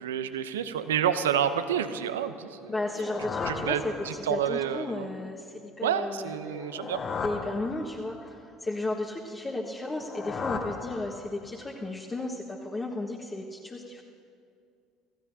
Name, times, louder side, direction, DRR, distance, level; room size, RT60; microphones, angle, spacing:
voice 1, 0.0-2.7 3.4-5.1 5.8-7.0, right 9 dB, 80° right, 11 dB, 0.7 m, -29 dB
sound 1, 2.7-4.5 6.4-8.3 9.8-11.6, left 4 dB, 40° left, 1.6 m, -36 dB
voice 2, 2.7-6.6 7.2-14.0, left 2 dB, 20° left, -4 dB, 1.5 m, -34 dB
27.0 x 15.5 x 2.8 m, 2.4 s
hypercardioid pair, 65°, 0 cm